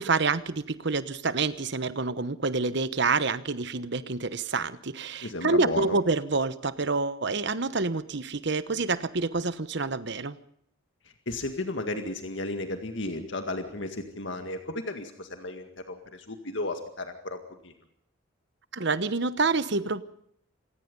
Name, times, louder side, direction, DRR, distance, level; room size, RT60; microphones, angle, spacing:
voice 1, 0.0-10.4 18.7-20.0, right 3 dB, 55° right, 14 dB, 1.1 m, -27 dB
voice 2, 5.2-6.0 11.0-17.7, left 2 dB, 60° left, 6 dB, 2.1 m, -34 dB
27.0 x 18.0 x 5.5 m, 0.69 s
head